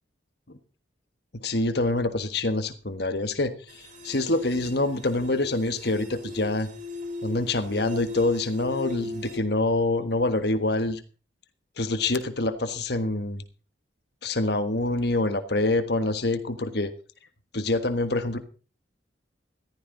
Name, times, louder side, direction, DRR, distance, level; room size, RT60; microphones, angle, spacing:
voice 1, 1.3-6.7 7.2-11.0 11.8-13.4 14.2-16.9 17.5-18.4, left 2 dB, 55° left, 9 dB, 1.4 m, -26 dB
sound 1, 3.7-9.4, left 2 dB, 40° right, 3.0 m, -38 dB
15.0 x 14.5 x 4.0 m, 0.38 s
head